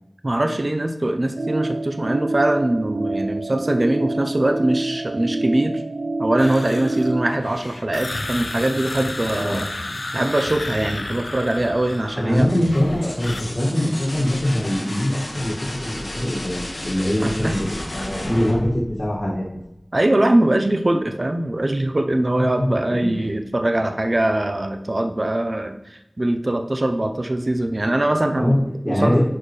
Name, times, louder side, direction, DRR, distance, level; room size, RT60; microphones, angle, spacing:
voice 1, 0.2-5.8 6.2-9.7 10.1-12.5 17.2-17.5 19.9-29.2, right 1 dB, 50° right, 6 dB, 0.7 m, -22 dB
sound 1, 1.4-7.4, right 2 dB, 90° right, 0.4 m, -27 dB
sound 2, 6.4-12.3 12.6-13.4, left 2 dB, 70° left, 0.5 m, -32 dB
sound 3, 12.2-19.7 21.5-22.1, left 1 dB, 90° left, 1.6 m, -32 dB
voice 2, 12.2-16.6 16.8-19.4 22.4-22.7 23.1-23.3 28.4-28.6 28.8-29.2, left 1 dB, 40° left, -6 dB, 2.0 m, -22 dB
9.9 x 4.3 x 3.3 m, 0.87 s
wide cardioid pair, 55°, 0 cm